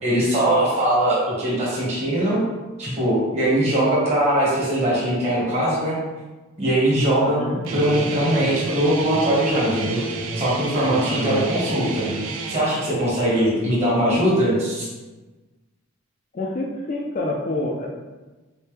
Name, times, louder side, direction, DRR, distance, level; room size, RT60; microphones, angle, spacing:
voice 1, 0.0-2.4 2.8-6.0 6.6-7.4 7.7-10.0 10.4-12.1 12.5-14.9, right 1 dB, 30° right, -7 dB, 1.2 m, -21 dB
voice 2, 7.3-7.6 11.1-11.5 13.4-13.7 16.3-17.9, left 2 dB, 35° left, -1 dB, 0.4 m, -28 dB
Guitar, 7.6-12.6, right 3 dB, 65° right, 0.4 m, -30 dB
4.4 x 2.1 x 3.2 m, 1.2 s
head